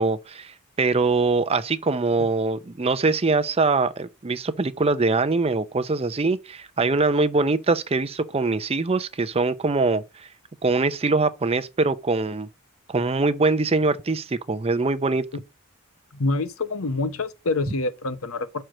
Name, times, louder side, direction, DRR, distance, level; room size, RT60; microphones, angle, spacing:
voice 1, 0.0-10.3 10.6-12.5 12.9-15.3, right 3 dB, 30° right, 0.6 m, -23 dB
voice 2, 16.1-18.6, left 2 dB, 70° left, 0.9 m, -26 dB
6.3 x 4.4 x 6.3 m
head